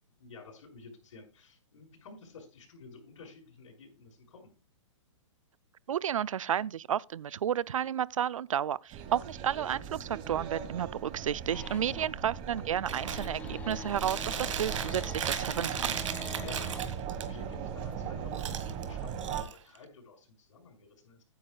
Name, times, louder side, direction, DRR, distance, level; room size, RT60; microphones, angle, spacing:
voice 1, 0.2-4.5 11.8-12.2 16.4-21.2, left 3 dB, 65° left, 5.6 m, -52 dB
voice 2, 5.9-16.0, right 9 dB, 90° right, 0.4 m, -32 dB
sound 1, 8.9-19.4, right 7 dB, 30° right, 1.5 m, -39 dB
sound 2, 11.5-12.2 12.5-16.8, left 5 dB, 10° left, 0.5 m, -46 dB
Chewing mastication, 12.9-13.3 13.7-17.2 18.3-19.8, right 8 dB, 70° right, 1.8 m, -37 dB
15.0 x 9.6 x 2.3 m
hypercardioid pair, 150°, 17 cm